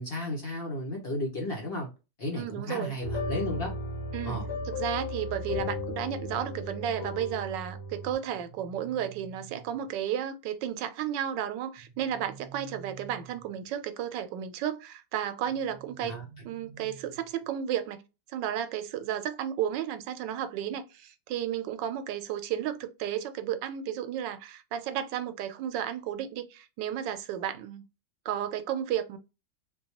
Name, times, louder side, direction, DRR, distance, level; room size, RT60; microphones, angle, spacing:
voice 1, 0.0-1.9 2.2-3.7 4.2-4.4 16.0-16.2, left 1 dB, 45° left, 0.9 m, -33 dB
voice 2, 2.3-2.9 4.1-4.4 4.8-16.2 16.4-18.0 18.3-27.8 28.2-29.2, right 10 dB, 90° right, 1.3 m, -33 dB
sound 1, 3.0-8.1, left 2 dB, 70° left, 1.5 m, -35 dB
sound 2, 8.1-10.1 11.7-13.8 15.4-17.5, right 7 dB, 20° right, 0.9 m, -50 dB
4.1 x 2.3 x 2.8 m
omnidirectional pair, 1.9 m